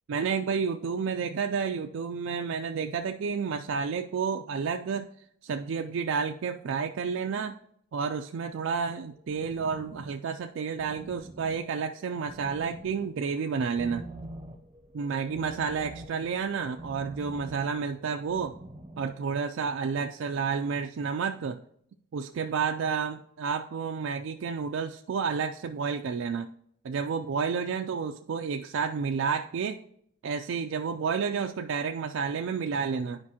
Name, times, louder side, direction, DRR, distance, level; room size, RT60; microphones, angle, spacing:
voice 1, 0.1-5.1 5.4-7.6 7.9-14.0 14.9-18.5 19.0-21.6 22.1-26.5 26.8-29.8 30.2-33.2, right 6 dB, 65° right, 5 dB, 0.3 m, -30 dB
sound 1, 8.8-19.3, right 1 dB, 15° right, 0.7 m, -46 dB
9.6 x 5.1 x 2.8 m, 0.70 s
head